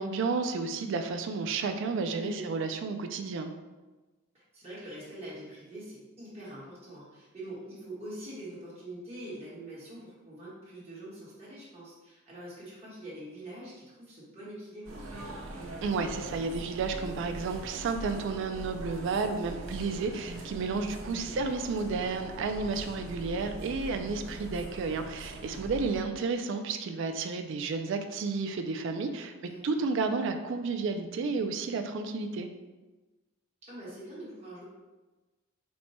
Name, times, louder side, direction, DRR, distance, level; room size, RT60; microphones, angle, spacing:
voice 1, 0.0-3.5 15.8-29.3 29.6-32.5, right 4 dB, 60° right, 6 dB, 0.3 m, -32 dB
voice 2, 2.1-2.5 4.3-15.4 21.2-21.5 29.3-29.9 33.6-34.6, right 1 dB, 30° right, -9 dB, 1.2 m, -44 dB
sound 1, 14.8-26.0, right 1 dB, 85° right, 0.7 m, -42 dB
4.3 x 2.2 x 4.1 m, 1.2 s
head